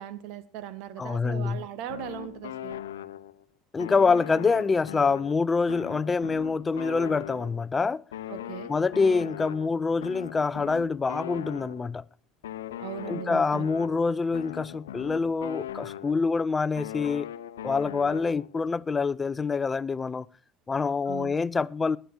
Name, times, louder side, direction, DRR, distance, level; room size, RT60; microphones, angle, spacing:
voice 1, 0.0-2.8 8.3-8.7 12.8-13.7 21.1-21.3, right 11 dB, 60° right, 1.3 m, -39 dB
voice 2, 1.0-1.6 3.7-8.0 8.7-12.0 13.1-17.3 17.6-20.3 20.7-22.0, left 4 dB, 20° left, 0.6 m, -26 dB
sound 1, 1.9-3.4 3.8-7.7 8.1-12.0 12.4-16.4 16.8-18.6, left 11 dB, 70° left, 0.8 m, -40 dB
19.0 x 10.0 x 4.5 m
figure-of-eight pair, 65°, 0 cm